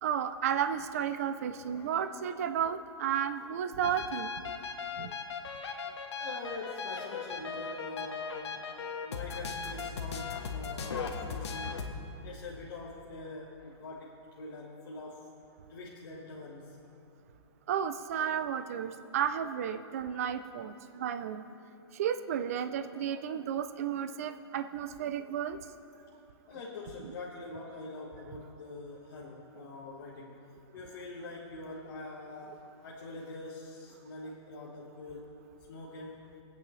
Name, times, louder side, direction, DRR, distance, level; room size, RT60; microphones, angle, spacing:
voice 1, 0.0-4.3 5.0-5.2 17.7-21.4 21.9-25.6, right 8 dB, 35° right, 10 dB, 0.4 m, -33 dB
voice 2, 1.7-2.1 6.2-11.8 12.2-15.3 15.7-16.8 20.8-20.9 26.5-30.4 30.7-35.4 35.7-36.2, left 2 dB, 50° left, -4 dB, 1.3 m, -44 dB
sound 1, 3.8-11.9, left 5 dB, 75° left, 1.3 m, -38 dB
23.0 x 8.5 x 3.2 m, 2.7 s
hypercardioid pair, 175°, 15 cm